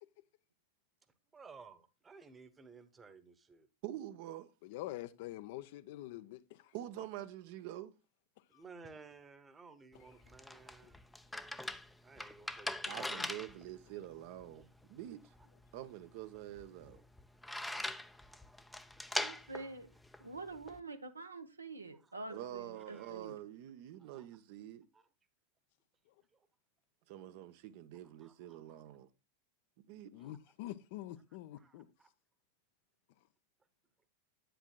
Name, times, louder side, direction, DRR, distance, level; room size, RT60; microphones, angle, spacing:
voice 1, 1.3-3.7 8.5-11.0 12.0-13.1 21.9-22.1 22.9-23.1 24.0-24.3 24.9-25.0 26.3-26.5 28.0-28.8 30.2-30.3 31.6-32.1, right 4 dB, 15° right, 1.0 m, -57 dB
voice 2, 3.8-4.5 6.7-7.9 12.9-15.3 15.7-17.0 22.3-24.9 27.1-29.1 29.9-30.1, right 13 dB, 50° right, 0.7 m, -46 dB
voice 3, 4.6-6.7 8.5-8.6 10.8-10.9 13.2-13.3 30.1-31.9, left 15 dB, 50° left, 0.6 m, -46 dB
sound 1, 9.9-20.8, left 1 dB, 5° left, 0.5 m, -43 dB
voice 4, 19.2-19.9 20.2-23.4, right 3 dB, 80° right, 0.9 m, -46 dB
10.0 x 9.1 x 2.2 m
figure-of-eight pair, 90°, 0 cm